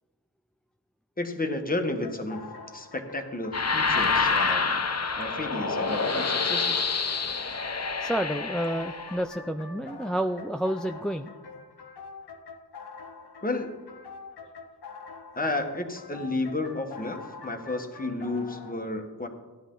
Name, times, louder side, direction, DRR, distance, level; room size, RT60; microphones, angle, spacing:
voice 1, 1.2-2.5 2.7-4.6 5.2-6.9 13.4-13.8 15.3-19.3, left 2 dB, 20° left, 4 dB, 1.4 m, -32 dB
sound 1, 2.0-18.7, left 4 dB, 90° left, 1.4 m, -45 dB
sound 2, 3.5-9.2, left 4 dB, 40° left, 0.9 m, -27 dB
voice 2, 8.0-11.3, equal, ahead, 6 dB, 0.4 m, -29 dB
16.0 x 11.0 x 3.9 m, 1.3 s
wide cardioid pair, 105°, 38 cm